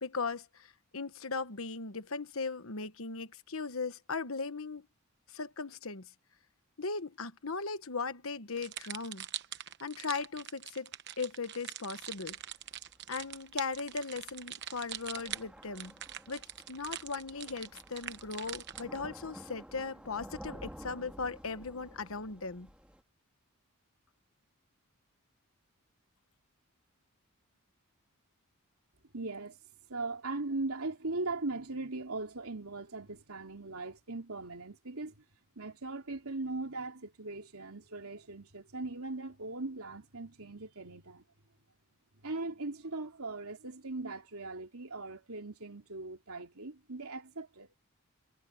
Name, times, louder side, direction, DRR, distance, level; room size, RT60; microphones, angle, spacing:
voice 1, 0.0-4.9 5.3-6.1 6.8-9.2 9.8-10.9 11.2-12.4 13.1-15.9 16.3-22.7, left 4 dB, 70° left, 1.2 m, -38 dB
sound 1, 8.6-19.0, right 11 dB, 50° right, 1.0 m, -43 dB
Thunder / Rain, 12.0-23.0, equal, 5° right, 2.7 m, -52 dB
voice 2, 29.1-29.6 29.9-35.2 35.5-41.3 42.2-47.8, right 2 dB, 85° right, 3.2 m, -39 dB
head